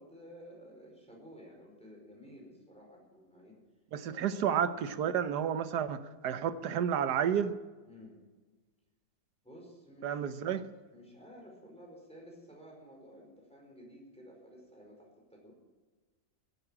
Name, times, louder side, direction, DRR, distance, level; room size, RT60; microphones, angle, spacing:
voice 1, 0.0-3.6 4.0-4.4 7.9-8.2 9.4-10.4 10.9-15.5, equal, 5° left, -1 dB, 4.9 m, -53 dB
voice 2, 3.9-7.6 10.0-10.6, right 8 dB, 85° right, 12 dB, 1.4 m, -31 dB
15.0 x 9.8 x 8.8 m, 1.3 s
omnidirectional pair, 1.7 m